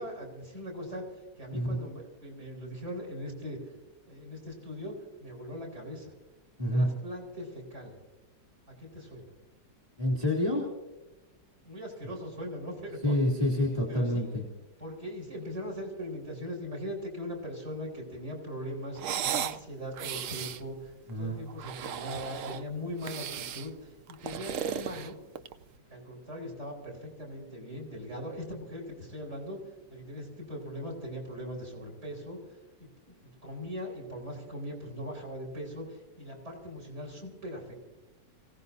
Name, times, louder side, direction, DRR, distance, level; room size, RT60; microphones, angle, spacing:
voice 1, 0.0-3.6 4.1-6.1 6.7-8.0 8.8-9.2 11.6-13.1 13.9-14.3 14.8-19.0 19.3-25.1 25.9-29.6 29.9-37.9, equal, 35° right, -2 dB, 5.2 m, -40 dB
voice 2, 10.0-10.7 13.0-14.4 21.1-21.4, left 1 dB, 15° right, -3 dB, 2.8 m, -27 dB
sound 1, 19.0-19.6 19.9-20.6 21.5-22.6 23.0-23.7 24.1-25.6, right 9 dB, 70° right, 0.7 m, -35 dB
29.0 x 17.0 x 2.8 m, 1.1 s
omnidirectional pair, 2.0 m